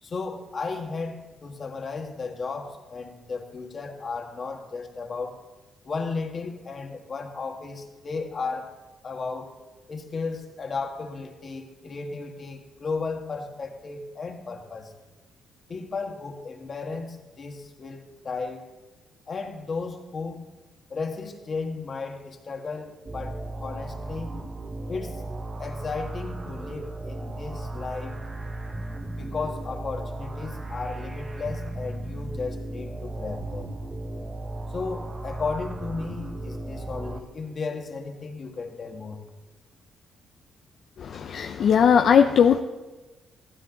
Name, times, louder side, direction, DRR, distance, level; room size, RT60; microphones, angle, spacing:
voice 1, 0.0-5.4 5.8-8.7 9.0-9.5 9.9-14.9 15.7-18.7 19.3-20.4 20.9-24.3 24.9-25.2 25.6-28.2 29.1-33.7 34.7-39.2, left 4 dB, 40° left, 4 dB, 1.7 m, -34 dB
sound 1, 23.1-37.2, right 2 dB, 25° right, 1.1 m, -35 dB
voice 2, 41.0-42.6, left 7 dB, 60° left, 5 dB, 0.6 m, -19 dB
14.5 x 12.5 x 3.9 m, 1.2 s
cardioid pair, 90°, 0 cm